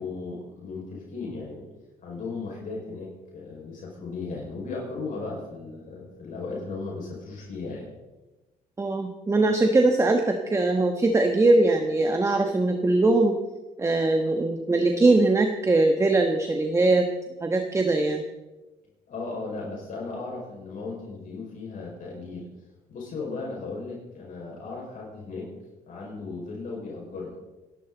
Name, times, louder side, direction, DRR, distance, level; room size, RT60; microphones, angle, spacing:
voice 1, 0.0-1.7 2.0-7.9 19.1-22.5 22.9-25.5 25.9-27.4, left 3 dB, 50° left, -3 dB, 5.5 m, -36 dB
voice 2, 8.8-13.4 13.8-17.1 17.4-18.2, right 2 dB, 15° right, 4 dB, 1.3 m, -21 dB
27.0 x 11.5 x 4.0 m, 1.1 s
cardioid pair, 110°, 17 cm